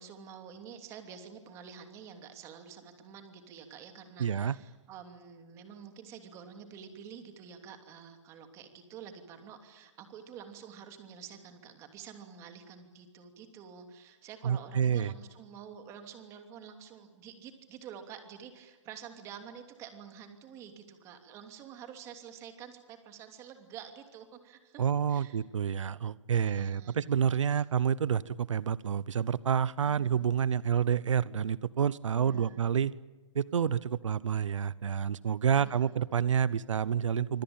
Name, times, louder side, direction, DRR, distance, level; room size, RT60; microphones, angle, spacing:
voice 1, 0.0-24.8 25.1-25.4 26.3-27.0 27.5-27.6 29.8-30.3 32.1-32.7 35.5-36.0, right 7 dB, 20° right, 6 dB, 2.9 m, -48 dB
voice 2, 4.2-4.6 14.4-15.1 24.8-32.9 33.3-37.4, right 8 dB, 90° right, 19 dB, 0.9 m, -28 dB
26.0 x 25.5 x 8.9 m, 1.3 s
hypercardioid pair, 165°, 16 cm